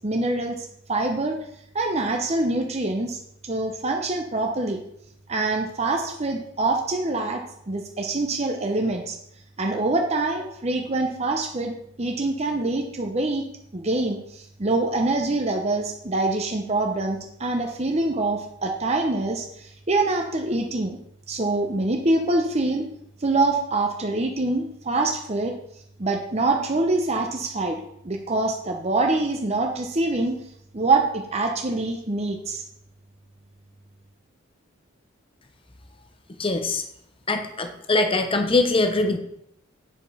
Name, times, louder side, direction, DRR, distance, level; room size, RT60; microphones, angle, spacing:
voice 1, 0.0-1.4 1.7-4.8 5.3-9.2 9.6-13.5 13.7-21.0 21.3-22.8 23.2-25.5 26.0-30.4 30.7-32.6, right 2 dB, 35° right, 3 dB, 0.8 m, -25 dB
voice 2, 36.4-36.8 37.3-39.2, left 2 dB, 30° left, 6 dB, 0.8 m, -22 dB
9.3 x 5.3 x 5.5 m, 0.74 s
head